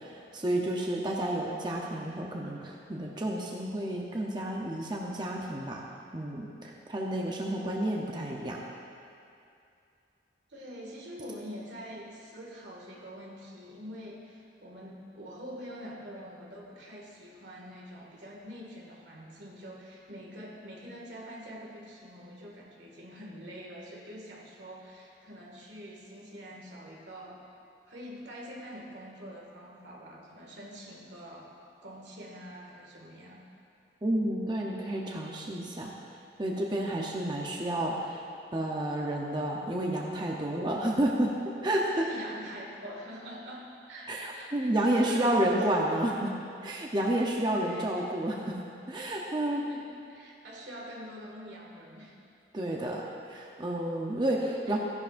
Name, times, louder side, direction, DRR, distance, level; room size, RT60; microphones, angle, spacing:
voice 1, 0.0-5.8 6.1-8.6 34.0-35.9 36.4-38.2 38.5-41.3 41.6-42.1 44.1-46.3 46.6-48.6 48.9-49.6 52.5-53.0 53.3-54.8, right 1 dB, 25° right, -1 dB, 0.7 m, -30 dB
voice 2, 10.5-27.4 27.9-31.5 31.8-33.5 41.9-46.2 47.5-48.1 49.4-52.2 54.6-54.8, equal, 85° right, -2 dB, 2.0 m, -45 dB
15.5 x 10.5 x 2.6 m, 2.5 s
head